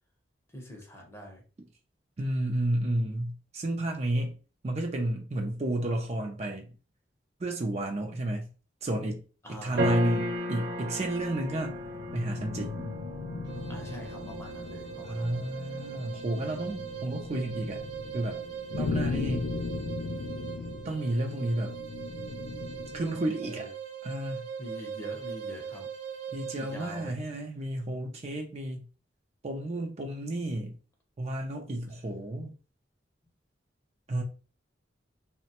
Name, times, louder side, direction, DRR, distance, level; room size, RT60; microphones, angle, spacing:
voice 1, 0.5-1.4 9.4-9.8 13.7-15.4 23.4-23.7 24.6-25.9 26.5-27.2, equal, 15° left, 0.7 m, -44 dB
voice 2, 2.2-4.4 4.6-6.7 7.4-8.5 8.8-9.2 9.5-11.8 12.1-12.9 14.2-14.3 15.1-17.8 18.1-18.4 18.7-19.6 20.8-21.7 22.9-23.7 24.0-24.5 26.3-28.9 29.4-30.8 31.2-32.5 34.1-34.2, right 1 dB, 35° right, 0.5 m, -31 dB
sound 1, 9.7-20.1, equal, 60° right, 1.0 m, -37 dB
sound 2, 10.7-23.3, left 4 dB, 65° left, 0.3 m, -38 dB
sound 3, 13.4-27.1, right 8 dB, 85° right, 0.6 m, -41 dB
3.0 x 2.1 x 2.8 m
head